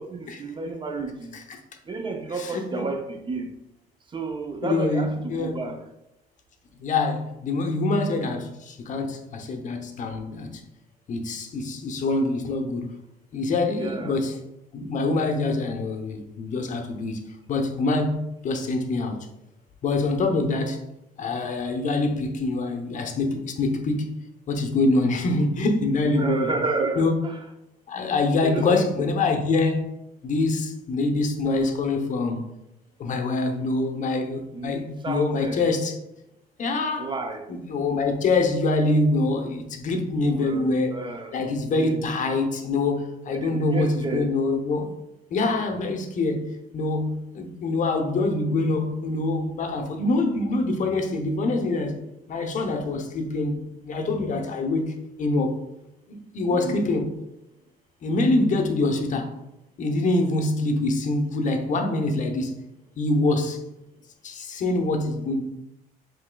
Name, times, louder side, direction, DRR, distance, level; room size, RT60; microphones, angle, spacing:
voice 1, 0.0-1.3 1.9-3.5 4.1-5.8 13.7-14.2 26.0-27.4 28.4-29.1 34.5-35.6 37.0-37.5 40.2-41.3 41.7-42.1 43.3-44.3 45.5-45.6 56.5-56.8, right 3 dB, 30° right, 5 dB, 0.5 m, -31 dB
voice 2, 2.3-2.9 4.6-5.5 6.8-10.6 11.1-13.0 13.3-14.4 14.7-19.2 19.8-20.8 21.2-24.2 24.5-26.5 26.9-27.2 27.9-29.8 30.2-32.4 33.0-36.0 36.6-37.1 37.5-41.0 41.3-44.9 45.3-52.0 52.3-55.6 56.1-57.2 58.0-59.3 59.8-62.5 63.0-63.6 64.2-65.4, left 2 dB, 50° left, 4 dB, 0.7 m, -25 dB
7.2 x 3.2 x 2.2 m, 0.87 s
cardioid pair, 110°, 17 cm